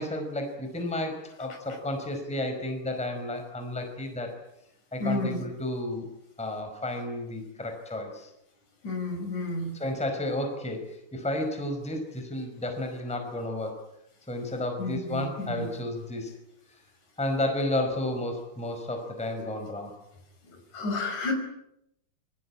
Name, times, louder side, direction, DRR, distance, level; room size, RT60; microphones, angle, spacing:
voice 1, 0.0-4.3 4.9-6.1 6.4-8.3 9.8-13.8 14.3-16.3 17.2-19.9, left 1 dB, ahead, 4 dB, 4.6 m, -32 dB
voice 2, 5.0-5.4 8.8-9.8 14.8-15.7 20.4-21.3, left 2 dB, 50° left, 4 dB, 6.9 m, -31 dB
26.5 x 24.0 x 8.7 m, 0.83 s
omnidirectional pair, 4.6 m